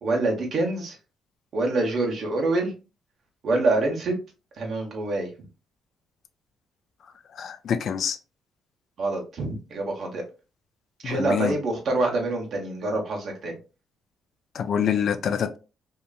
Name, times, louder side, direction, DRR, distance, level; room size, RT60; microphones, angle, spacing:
voice 1, 0.0-1.0 1.5-2.7 3.4-4.2 4.6-5.3 9.0-10.2 11.0-13.6, right 2 dB, 60° right, 1.1 m, -26 dB
voice 2, 7.3-8.2 11.0-11.6 14.5-15.6, left 8 dB, 60° left, 0.4 m, -26 dB
2.8 x 2.5 x 2.3 m
cardioid pair, 90°, 0 cm